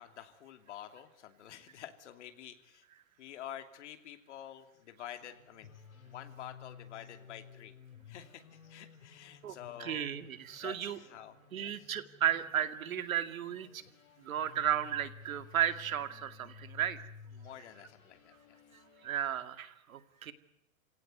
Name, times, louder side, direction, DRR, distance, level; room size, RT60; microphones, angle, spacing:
voice 1, 0.0-2.8 3.2-5.7 6.1-7.7 8.1-10.1 10.6-11.9 17.3-18.6, left 11 dB, 55° left, 7 dB, 2.9 m, -49 dB
sound 1, 5.2-19.1, left 7 dB, 80° left, 5.1 m, -55 dB
voice 2, 9.4-11.0 11.5-13.8 14.2-17.0 19.0-20.3, right 10 dB, 75° right, 10 dB, 2.4 m, -34 dB
28.0 x 17.5 x 9.5 m, 0.85 s
hypercardioid pair, 165°, 41 cm